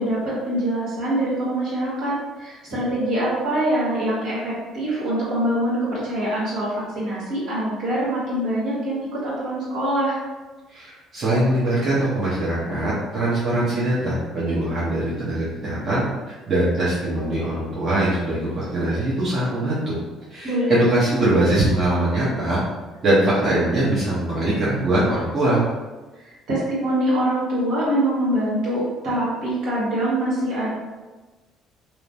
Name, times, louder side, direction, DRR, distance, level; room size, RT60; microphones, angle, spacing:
voice 1, 0.0-10.2 20.4-20.7 21.2-21.3 26.2-30.7, right 1 dB, 70° right, -8 dB, 1.4 m, -24 dB
voice 2, 10.7-20.0 20.3-22.6 23.0-25.6, right 1 dB, 45° right, -9 dB, 0.9 m, -22 dB
3.0 x 2.1 x 2.6 m, 1.2 s
supercardioid pair, 70°, 0 cm